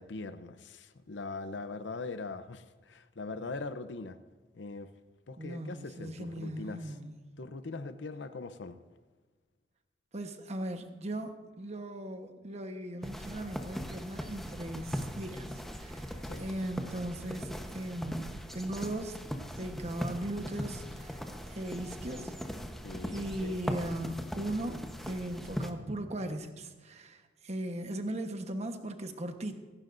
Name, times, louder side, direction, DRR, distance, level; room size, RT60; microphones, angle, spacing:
voice 1, 0.0-4.2 4.5-4.9 5.3-7.0 7.4-8.8 16.2-16.4 22.8-23.6, left 3 dB, 80° left, 10 dB, 0.7 m, -41 dB
voice 2, 5.4-7.2 10.1-19.2 19.5-21.2 21.5-22.3 23.1-29.5, right 1 dB, 40° right, 6 dB, 1.2 m, -38 dB
sound 1, 13.0-25.7, equal, ahead, 1.0 m, -39 dB
24.5 x 11.5 x 2.6 m, 1.4 s
head